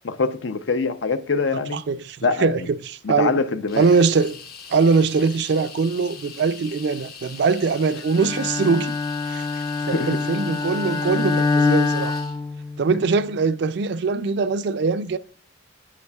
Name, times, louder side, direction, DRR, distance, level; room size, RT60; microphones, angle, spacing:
voice 1, 0.0-1.8 2.2-2.6 3.0-3.9 9.9-10.2, left 4 dB, 75° left, 0.6 m, -24 dB
voice 2, 1.5-3.4 3.8-4.4 4.7-9.0 9.3-12.2 12.8-15.2, right 4 dB, 60° right, 0.4 m, -22 dB
sound 1, 3.7-12.4, left 6 dB, 55° left, 1.0 m, -41 dB
Bowed string instrument, 8.1-13.1, left 4 dB, 20° left, 0.4 m, -24 dB
8.6 x 8.1 x 2.3 m
head